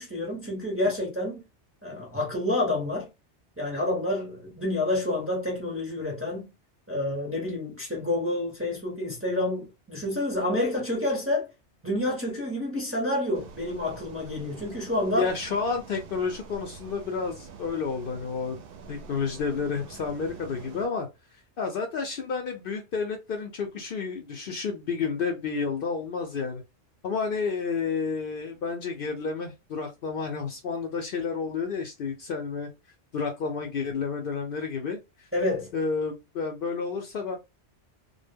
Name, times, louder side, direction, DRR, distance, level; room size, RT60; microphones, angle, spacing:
voice 1, 0.0-1.4 1.8-3.1 3.6-6.5 6.9-11.5 11.8-15.3 35.3-35.7, left 1 dB, 15° right, 0.6 m, -28 dB
sound 1, 13.3-20.9, right 5 dB, 60° right, 0.7 m, -46 dB
voice 2, 15.2-18.6 18.9-21.1 21.6-26.6 27.0-32.7 33.1-35.0 35.7-37.4, left 5 dB, 60° left, 0.6 m, -30 dB
2.1 x 2.1 x 3.4 m
omnidirectional pair, 1.2 m